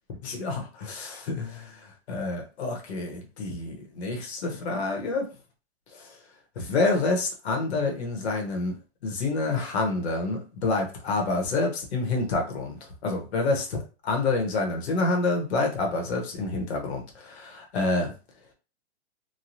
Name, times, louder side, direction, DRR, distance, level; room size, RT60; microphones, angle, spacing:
voice 1, 0.2-1.8 2.1-5.3 5.9-6.1 6.6-8.7 9.0-18.1, left 3 dB, 65° left, 1 dB, 1.0 m, -28 dB
3.1 x 2.2 x 2.7 m, 0.33 s
hypercardioid pair, 175°, 35 cm